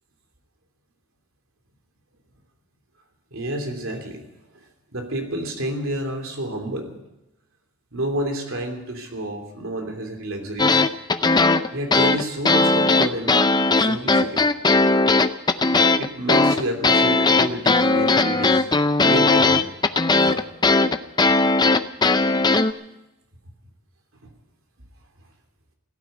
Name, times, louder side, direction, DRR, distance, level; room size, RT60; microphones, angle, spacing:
voice 1, 3.3-4.2 4.5-4.6 4.9-6.9 7.9-10.8 11.7-13.4 13.8-14.5 15.5-15.6 16.0-18.7 19.0-19.7 20.2-20.6, right 1 dB, 65° right, 3 dB, 3.1 m, -29 dB
sound 1, 10.6-22.7, left 3 dB, 20° left, 0.5 m, -18 dB
16.0 x 9.5 x 9.6 m, 0.93 s
head